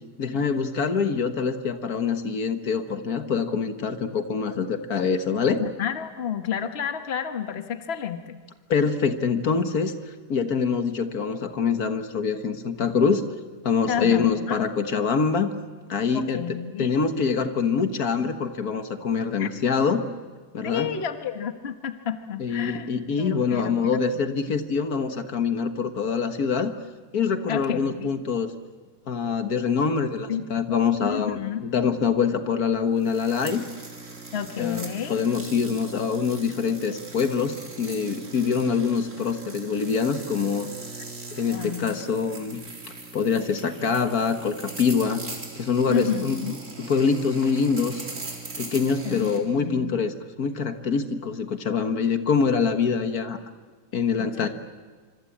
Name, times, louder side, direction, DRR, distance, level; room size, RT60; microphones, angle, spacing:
voice 1, 0.2-5.6 8.7-13.2 13.6-15.5 15.9-20.0 20.5-20.9 22.4-26.7 27.1-28.5 29.1-33.6 34.6-40.7 41.3-42.6 43.1-45.2 45.6-46.4 46.8-48.1 48.6-53.4 53.9-54.5, left 5 dB, 70° left, 8 dB, 1.9 m, -25 dB
voice 2, 5.6-8.3 13.9-14.6 16.1-17.0 19.4-19.5 20.6-22.9 23.2-24.2 27.5-28.1 30.3-31.7 34.3-35.2 41.5-41.9 45.9-46.5 49.0-50.0 54.2-54.5, left 8 dB, 45° left, 8 dB, 1.5 m, -31 dB
sound 1, 33.0-49.4, right 3 dB, 50° right, 4.0 m, -40 dB
26.0 x 25.5 x 8.6 m, 1.5 s
omnidirectional pair, 1.7 m